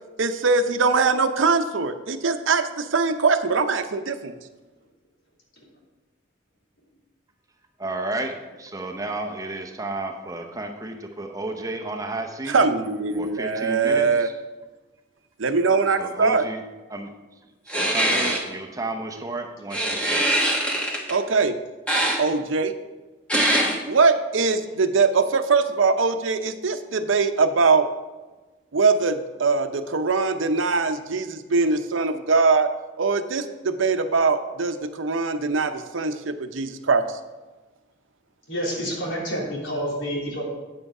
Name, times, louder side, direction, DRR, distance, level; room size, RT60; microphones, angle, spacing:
voice 1, 0.2-4.3 12.5-14.3 15.4-16.4 21.1-21.6 22.2-22.7 23.9-27.9 28.7-32.7 33.0-37.2, right 4 dB, 80° right, 8 dB, 0.7 m, -22 dB
voice 2, 7.8-12.6 13.2-14.3 16.0-16.6 16.9-17.1 17.6-20.3, right 2 dB, 15° right, 3 dB, 0.8 m, -32 dB
sound 1, 17.7-18.4 19.7-21.1 21.9-22.2 23.3-23.7, right 1 dB, 5° left, 1.2 m, -22 dB
voice 3, 38.5-40.4, equal, 80° left, -3 dB, 3.2 m, -28 dB
9.0 x 7.7 x 4.9 m, 1.2 s
head